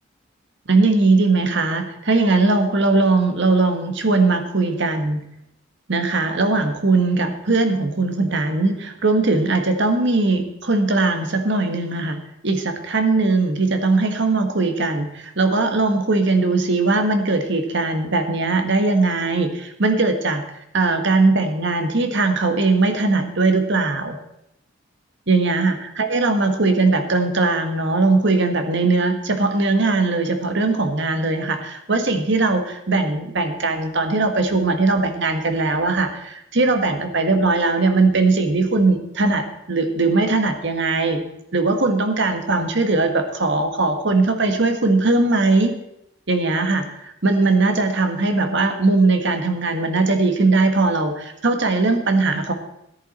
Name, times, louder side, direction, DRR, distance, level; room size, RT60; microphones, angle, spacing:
voice 1, 0.7-5.2 5.9-12.2 12.4-20.4 20.7-24.2 25.3-41.2 41.5-45.7 46.3-52.5, right 3 dB, 65° right, 6 dB, 1.4 m, -20 dB
13.5 x 11.0 x 4.2 m, 0.80 s
head